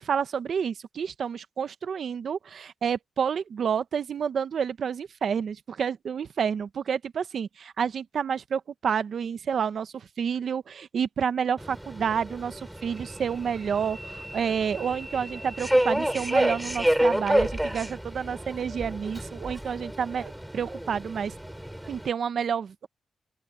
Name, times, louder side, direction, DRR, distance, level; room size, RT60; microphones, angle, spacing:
voice 1, 0.0-21.3 21.9-22.9, right 7 dB, 70° right, 1.0 m, -29 dB
Subway metro underground, 11.6-22.1, equal, 5° right, 5.1 m, -29 dB
open air
cardioid pair, 75°, 0 cm